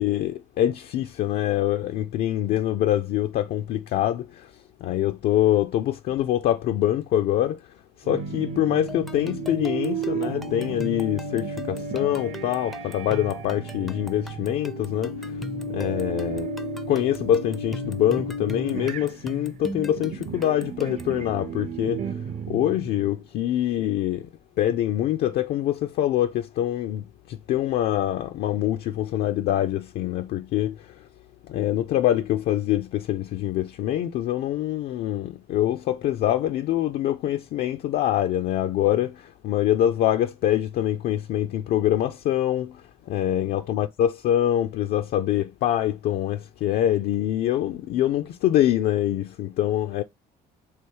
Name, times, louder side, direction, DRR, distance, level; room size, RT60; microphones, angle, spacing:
voice 1, 0.0-4.5 4.8-7.6 8.0-15.4 15.7-16.5 16.9-22.0 22.5-24.3 24.6-31.1 31.5-50.0, left 12 dB, 65° left, 0.4 m, -25 dB
sound 1, 8.0-23.2, right 3 dB, 45° right, 0.6 m, -33 dB
sound 2, 8.9-21.2, equal, ahead, 0.4 m, -40 dB
3.3 x 3.0 x 4.5 m
cardioid pair, 110°, 17 cm